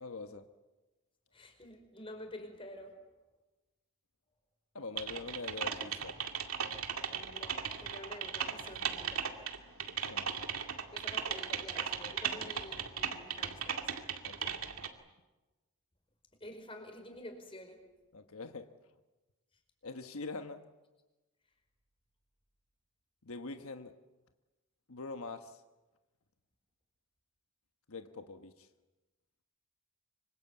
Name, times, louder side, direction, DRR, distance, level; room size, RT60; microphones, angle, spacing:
voice 1, 0.0-0.5 4.7-6.2 10.0-10.3 14.2-14.5 18.1-18.7 19.8-20.6 23.2-23.9 24.9-25.6 27.9-28.7, left 3 dB, 80° left, 7 dB, 1.2 m, -44 dB
voice 2, 1.3-2.9 7.1-9.3 10.9-13.9 16.4-17.8, left 1 dB, 25° left, 5 dB, 5.0 m, -49 dB
Typing, 5.0-14.9, right 7 dB, 80° right, 2.4 m, -37 dB
25.5 x 25.5 x 8.4 m, 1.1 s
head